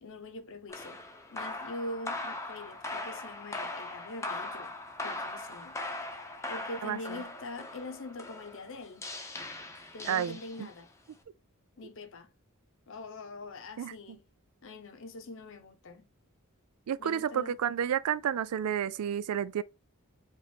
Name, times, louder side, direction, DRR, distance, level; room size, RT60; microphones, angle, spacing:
voice 1, 0.0-1.0 1.3-4.7 5.0-5.8 6.5-9.1 9.9-10.9 11.8-12.3 12.9-14.2 14.6-16.1 17.0-17.6, left 2 dB, 60° left, 0.8 m, -43 dB
sound 1, 0.7-10.9, left 2 dB, 15° left, 0.7 m, -40 dB
voice 2, 10.0-10.7 13.8-13.9 16.9-19.6, right 9 dB, 90° right, 0.4 m, -31 dB
5.2 x 2.5 x 3.4 m
head